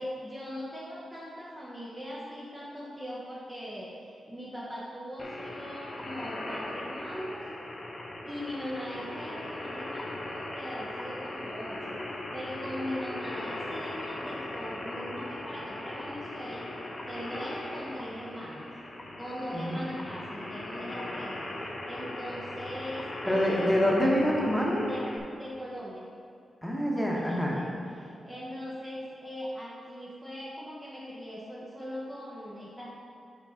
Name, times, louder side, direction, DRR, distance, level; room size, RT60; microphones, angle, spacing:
voice 1, 0.0-7.4 8.2-16.7 17.1-18.7 19.2-24.2 24.8-26.1 27.1-33.0, equal, 15° right, -6 dB, 1.0 m, -40 dB
sound 1, 5.2-25.2, left 1 dB, 30° left, 0.9 m, -39 dB
voice 2, 19.5-19.8 23.2-24.9 26.6-27.6, equal, 5° left, -3 dB, 1.3 m, -26 dB
6.0 x 5.6 x 5.1 m, 2.5 s
wide cardioid pair, 115°, 0 cm